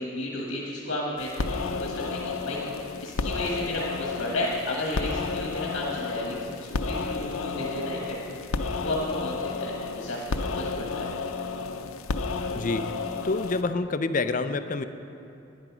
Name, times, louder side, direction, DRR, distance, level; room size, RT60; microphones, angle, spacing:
voice 1, 0.0-8.2 8.8-11.1, left 1 dB, 60° left, -2 dB, 1.4 m, -33 dB
sound 1, 1.2-13.6, left 4 dB, 85° left, 0.6 m, -32 dB
voice 2, 12.6-13.0 13.2-14.8, left 3 dB, 40° left, 10 dB, 0.4 m, -27 dB
11.5 x 10.5 x 6.0 m, 2.7 s
head